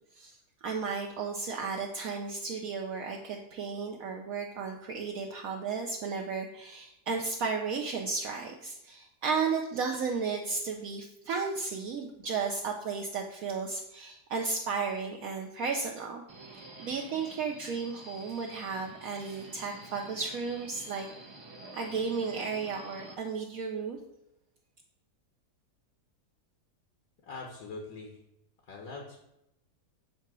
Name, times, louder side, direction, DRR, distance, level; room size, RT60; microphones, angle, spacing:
voice 1, 0.1-16.2 16.5-21.1 21.7-24.0, right 5 dB, 65° right, 1 dB, 1.0 m, -34 dB
Subway metro underground, 16.3-23.1, right 2 dB, 45° right, 0.3 m, -49 dB
voice 2, 27.2-28.2 28.6-29.2, left 3 dB, 65° left, 1 dB, 1.3 m, -42 dB
7.5 x 2.8 x 6.0 m, 0.83 s
omnidirectional pair, 1.7 m